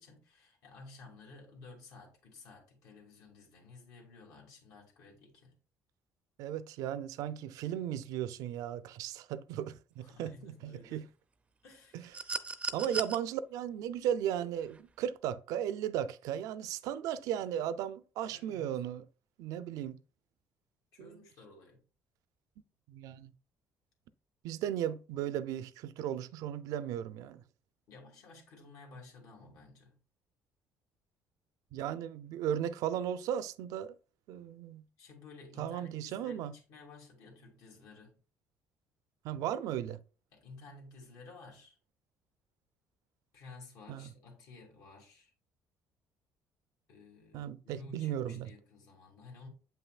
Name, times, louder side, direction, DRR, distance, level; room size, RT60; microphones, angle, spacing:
voice 1, 0.0-5.5 10.0-11.0 11.6-12.1 18.3-18.8 20.9-21.8 27.9-30.0 35.0-38.2 40.3-41.8 43.3-45.3 46.9-49.5, left 3 dB, 75° left, 2.3 m, -53 dB
voice 2, 6.4-11.0 11.9-12.1 12.7-19.0 19.4-20.0 21.0-21.2 22.9-23.3 24.4-27.4 31.7-33.9 34.3-34.8 35.6-36.5 39.2-40.0 43.9-44.1 47.3-48.5, right 10 dB, 80° right, 0.4 m, -36 dB
sound 1, 12.1-13.2 14.7-14.8, right 3 dB, 20° right, 0.4 m, -36 dB
7.6 x 5.6 x 2.3 m
cardioid pair, 145°, 6 cm